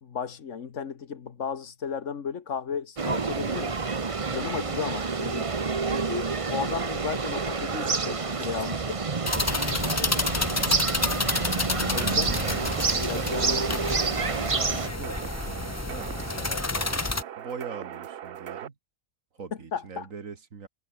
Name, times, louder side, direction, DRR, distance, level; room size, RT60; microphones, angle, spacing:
voice 1, 0.0-3.8 4.3-5.5 5.9-9.0 11.9-12.4 13.0-13.9 19.7-20.1, left 7 dB, 70° left, 1.6 m, -34 dB
sound 1, 3.0-14.9, right 4 dB, 30° right, 0.9 m, -28 dB
sound 2, 9.3-17.2, left 3 dB, 25° left, 0.3 m, -30 dB
sound 3, 11.8-18.7, right 10 dB, 55° right, 0.8 m, -39 dB
voice 2, 11.8-13.3 14.1-16.7 17.4-18.8 19.4-20.7, right 5 dB, 80° right, 2.2 m, -42 dB
omnidirectional pair, 1.4 m